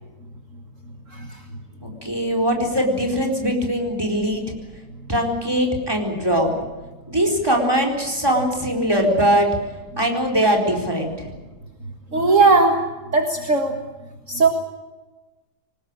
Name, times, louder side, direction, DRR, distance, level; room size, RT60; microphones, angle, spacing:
voice 1, 1.8-4.4 5.1-6.5 7.1-9.5 10.0-11.3, equal, 15° right, 1 dB, 4.3 m, -21 dB
voice 2, 12.1-12.7 13.1-13.7 14.3-14.5, right 3 dB, 50° right, 3 dB, 2.1 m, -16 dB
24.0 x 20.0 x 9.0 m, 1.2 s
omnidirectional pair, 1.8 m